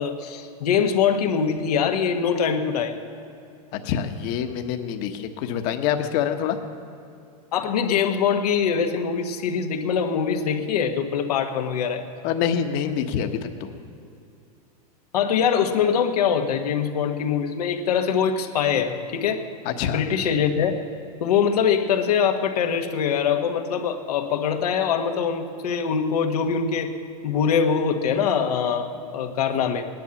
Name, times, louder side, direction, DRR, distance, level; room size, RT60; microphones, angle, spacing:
voice 1, 0.0-2.9 7.5-12.0 15.1-19.4 19.8-20.8 21.2-26.9 27.2-29.9, left 7 dB, 85° left, 4 dB, 1.5 m, -23 dB
voice 2, 3.7-6.6 12.2-13.7 19.6-20.0, left 8 dB, 50° left, 7 dB, 1.2 m, -26 dB
18.0 x 10.5 x 7.2 m, 2.5 s
supercardioid pair, 135°, 19 cm